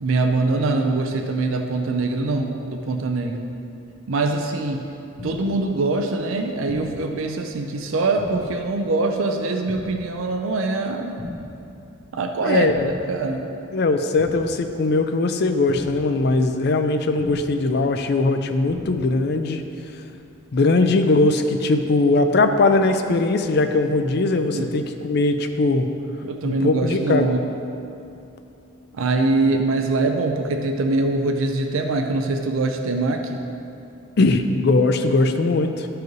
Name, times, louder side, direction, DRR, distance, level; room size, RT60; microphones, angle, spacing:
voice 1, 0.0-3.5 4.1-4.8 5.2-11.2 12.1-12.7 13.1-13.5 24.5-24.7 26.2-27.5 28.9-33.4, right 3 dB, 75° right, 5 dB, 0.5 m, -23 dB
sound 1, 5.2-5.6 6.7-7.1 8.2-8.6 9.7-10.1 11.2-11.6 12.7-13.1 14.2-14.6 15.7-16.1 17.2-17.6 18.7-19.1, left 2 dB, 85° left, 1.2 m, -36 dB
voice 2, 12.4-12.9 13.7-19.6 20.5-25.9 26.4-27.3 34.2-35.9, left 3 dB, 50° left, 7 dB, 0.4 m, -20 dB
12.0 x 4.7 x 3.1 m, 2.7 s
head